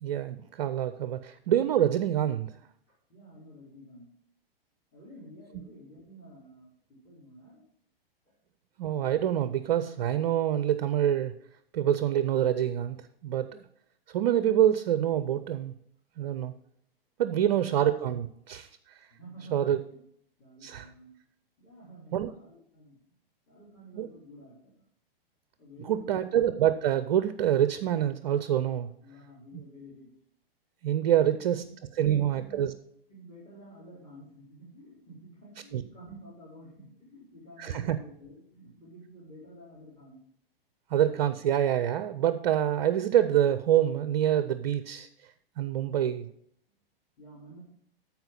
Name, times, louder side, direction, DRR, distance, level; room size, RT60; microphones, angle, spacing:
voice 1, 0.0-2.5 8.8-11.3 11.7-13.6 14.1-15.7 16.2-16.5 17.2-19.0 19.5-19.8 20.6-20.9 22.1-22.3 24.0-24.1 25.9-28.9 30.8-31.6 32.0-32.7 35.7-35.8 37.6-38.0 40.9-45.1 45.6-46.3, right 10 dB, 45° right, 12 dB, 0.6 m, -26 dB
voice 2, 2.9-4.1 4.9-7.6 8.2-8.3 19.1-20.0 20.4-21.1 21.6-23.0 23.5-24.7 25.6-26.3 29.0-30.1 31.2-32.6 33.1-40.2 46.7-46.8 47.2-47.6, right 1 dB, 20° left, -7 dB, 4.7 m, -51 dB
13.5 x 4.6 x 5.4 m, 0.70 s
figure-of-eight pair, 105°, 30 cm